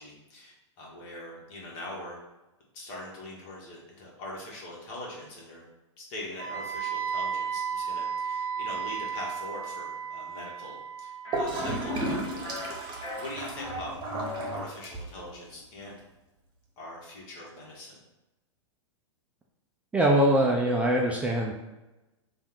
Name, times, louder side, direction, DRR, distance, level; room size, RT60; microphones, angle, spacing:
voice 1, 0.0-2.2 2.7-5.6 6.0-11.1 11.4-14.0 14.5-16.0 16.8-18.0, left 1 dB, 45° left, -3 dB, 1.4 m, -42 dB
Wind instrument woodwind instrument, 6.4-14.3, right 7 dB, 45° right, 0.7 m, -35 dB
sound 1, 11.2-11.4 11.8-12.1 12.4-12.7 13.0-13.8 14.1-14.5, left 2 dB, 70° left, 1.2 m, -38 dB
Gurgling / Toilet flush, 11.3-15.3, right 1 dB, 30° right, 1.0 m, -33 dB
voice 2, 19.9-21.5, right 1 dB, 10° right, -2 dB, 0.4 m, -23 dB
3.5 x 2.5 x 4.5 m, 1.0 s
figure-of-eight pair, 100°, 16 cm